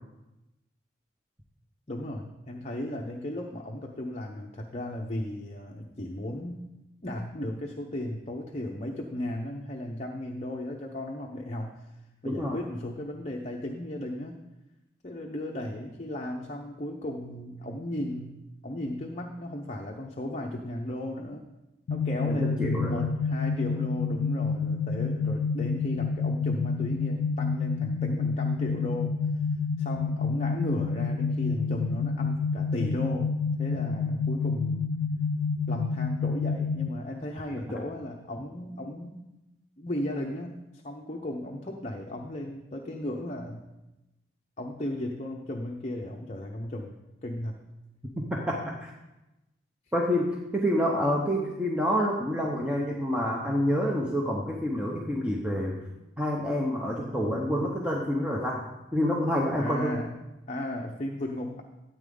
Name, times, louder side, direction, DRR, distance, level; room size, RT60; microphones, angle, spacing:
voice 1, 1.9-6.6 7.0-11.8 12.2-14.4 15.0-21.4 21.9-29.2 29.8-33.3 33.6-34.9 35.7-39.2 39.8-43.6 44.6-46.9 47.2-47.6 59.6-60.2 60.5-61.6, left 1 dB, 35° left, 0 dB, 0.7 m, -35 dB
voice 2, 12.2-12.6 22.3-23.0 48.5-48.9 49.9-55.8 56.2-58.6 58.9-60.0, equal, 5° right, -2 dB, 0.9 m, -28 dB
sound 1, 21.9-36.9, left 4 dB, 70° left, 0.3 m, -28 dB
13.0 x 8.4 x 3.8 m, 0.98 s
head